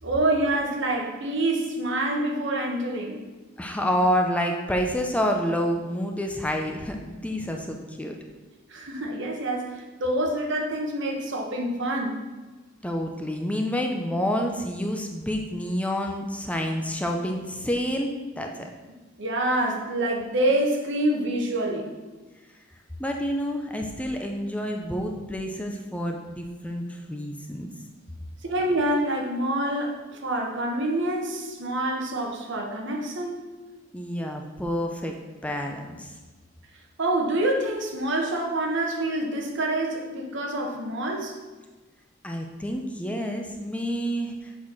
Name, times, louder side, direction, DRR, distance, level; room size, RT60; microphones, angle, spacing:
voice 1, 0.0-3.2 8.7-12.2 19.2-21.9 28.4-33.4 37.0-41.4, right 1 dB, 65° right, 1 dB, 1.2 m, -26 dB
voice 2, 3.6-8.2 12.8-18.7 23.0-27.7 33.9-35.1 35.4-36.1 42.2-44.3, equal, 5° left, 2 dB, 0.6 m, -28 dB
7.4 x 4.2 x 6.0 m, 1.2 s
head